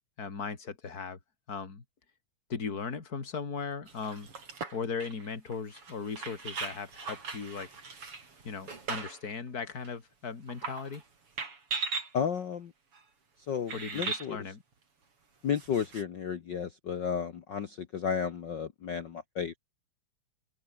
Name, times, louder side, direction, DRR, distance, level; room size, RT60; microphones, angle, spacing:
voice 1, 0.2-1.2 1.5-1.8 2.5-4.3 4.7-7.7 8.4-11.0 13.7-14.6, left 5 dB, 30° left, 3.0 m, -37 dB
sound 1, 3.9-9.3 9.8-9.9 10.5-11.0 11.4-12.1 12.9-13.0 13.7-14.3 15.5-16.0, right 4 dB, 45° right, 5.0 m, -38 dB
voice 2, 12.1-12.7 13.5-14.4 15.4-19.6, left 7 dB, 75° left, 1.0 m, -33 dB
open air
omnidirectional pair, 3.7 m